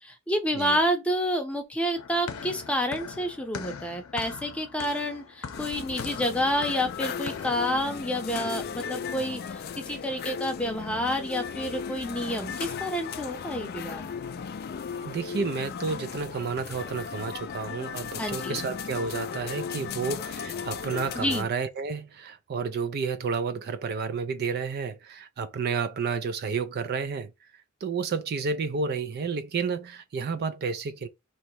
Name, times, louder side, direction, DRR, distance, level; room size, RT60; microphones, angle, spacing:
voice 1, 0.0-14.1 18.2-18.6 21.2-21.5, equal, 5° left, 0.7 m, -29 dB
sound 1, 2.0-7.8, left 5 dB, 80° left, 0.7 m, -41 dB
sound 2, 5.5-21.4, left 6 dB, 45° left, 0.3 m, -36 dB
voice 2, 15.0-27.3 27.8-31.1, right 5 dB, 50° right, 0.4 m, -31 dB
3.1 x 2.9 x 4.5 m
head